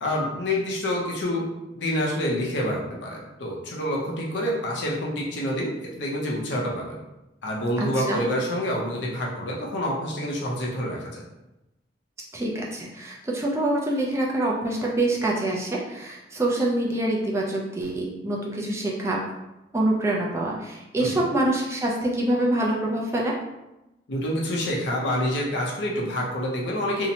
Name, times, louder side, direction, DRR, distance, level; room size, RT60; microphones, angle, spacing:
voice 1, 0.0-1.5 1.7-7.0 7.4-11.2 21.0-21.3 24.1-27.1, equal, 75° left, -3 dB, 0.6 m, -27 dB
voice 2, 7.8-8.2 12.3-19.2 19.7-23.3, right 1 dB, 15° right, -3 dB, 0.3 m, -25 dB
2.7 x 2.1 x 2.7 m, 0.96 s
head